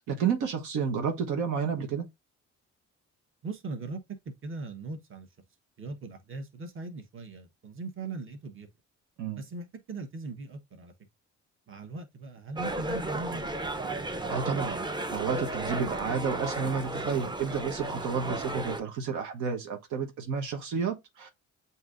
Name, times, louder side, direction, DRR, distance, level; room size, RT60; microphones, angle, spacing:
voice 1, 0.1-2.1 9.2-9.4 14.3-21.3, right 6 dB, 90° right, 1.0 m, -31 dB
voice 2, 3.4-5.3 5.8-8.7 9.4-10.9 11.7-13.4, right 3 dB, 45° right, 1.1 m, -39 dB
sound 1, 12.6-18.8, right 2 dB, 15° right, 0.5 m, -34 dB
7.8 x 2.8 x 2.4 m
cardioid pair, 90°, 30 cm